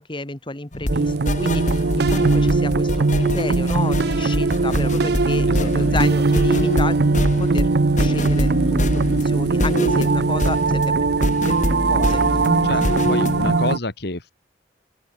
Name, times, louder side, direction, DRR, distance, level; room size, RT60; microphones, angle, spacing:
voice 1, 0.0-7.7 8.0-10.9 11.5-12.7, left 2 dB, 30° left, 2.4 m, -32 dB
sound 1, 0.7-13.6, left 1 dB, 45° left, 2.7 m, -25 dB
sound 2, 0.9-13.8, right 3 dB, 65° right, 0.7 m, -20 dB
voice 2, 5.4-6.2 12.6-12.8 13.1-14.3, left 2 dB, 65° left, 2.3 m, -29 dB
open air
head